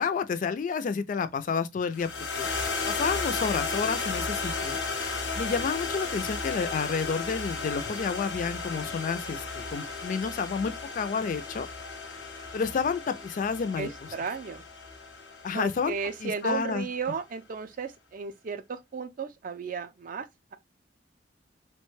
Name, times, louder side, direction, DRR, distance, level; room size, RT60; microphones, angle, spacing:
voice 1, 0.0-11.7 12.5-13.9 15.4-15.9 16.2-16.9, left 5 dB, 45° left, 0.3 m, -30 dB
sound 1, 1.9-16.4, left 4 dB, 85° left, 0.7 m, -34 dB
voice 2, 13.8-14.6 15.5-20.2, right 5 dB, 50° right, 0.4 m, -34 dB
2.9 x 2.1 x 3.0 m
head